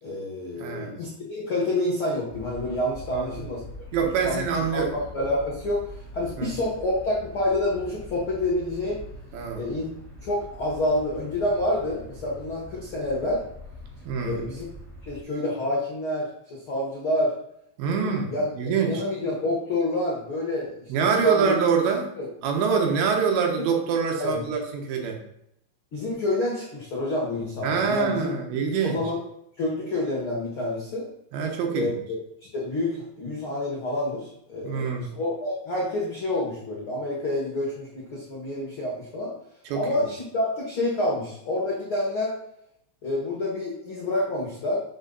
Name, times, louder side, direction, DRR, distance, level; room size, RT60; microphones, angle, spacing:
voice 1, 0.0-3.6 4.2-4.4 4.7-9.0 9.5-9.9 10.2-13.4 14.2-14.6 15.1-17.3 18.0-20.9 21.2-21.5 22.2-22.3 24.2-24.5 25.9-29.2 29.6-31.1 31.7-32.0 32.5-39.3 39.7-42.3 43.0-44.8, left 1 dB, 90° left, -4 dB, 1.1 m, -28 dB
voice 2, 0.6-1.0 3.1-3.4 3.9-4.9 6.4-6.5 9.3-9.6 14.1-14.4 17.8-19.0 20.9-22.1 22.4-25.2 27.6-29.0 31.3-32.0 34.6-35.1 39.7-39.8, right 6 dB, 75° right, 2 dB, 3.3 m, -25 dB
sound 1, 2.3-15.2, left 1 dB, ahead, 1.1 m, -43 dB
7.1 x 6.8 x 4.0 m, 0.75 s
omnidirectional pair, 5.3 m